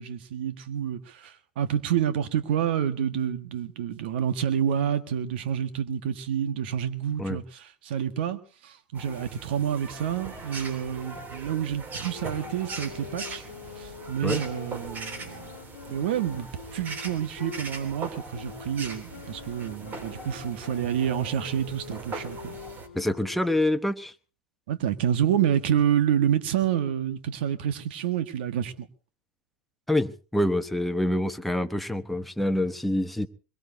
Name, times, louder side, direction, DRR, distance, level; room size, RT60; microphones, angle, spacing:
voice 1, 0.0-13.4 13.8-15.5 15.9-22.6 24.7-28.9, right 9 dB, 70° right, 1.6 m, -28 dB
sound 1, 8.9-22.9, right 3 dB, 30° right, 3.2 m, -40 dB
sound 2, 11.9-17.6 18.3-23.7, left 8 dB, 90° left, 1.2 m, -45 dB
voice 2, 22.9-24.1 29.9-33.3, left 1 dB, ahead, 1.0 m, -26 dB
22.5 x 22.5 x 2.8 m
hypercardioid pair, 100°, 6 cm